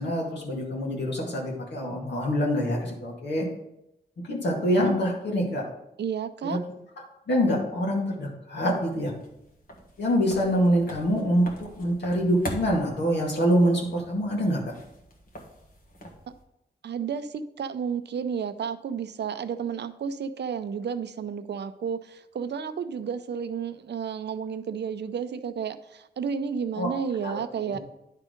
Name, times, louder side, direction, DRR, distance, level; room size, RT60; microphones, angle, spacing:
voice 1, 0.0-3.5 4.2-5.6 6.4-6.6 7.3-9.1 10.0-14.7 26.8-26.9 27.2-27.3 27.7-27.8, equal, 80° left, -2 dB, 2.1 m, -25 dB
voice 2, 6.0-6.6 16.8-27.8, right 7 dB, 80° right, 11 dB, 0.5 m, -32 dB
sound 1, 8.7-16.4, equal, 55° left, 1.5 m, -42 dB
10.5 x 3.8 x 5.1 m, 0.85 s
wide cardioid pair, 95°, 18 cm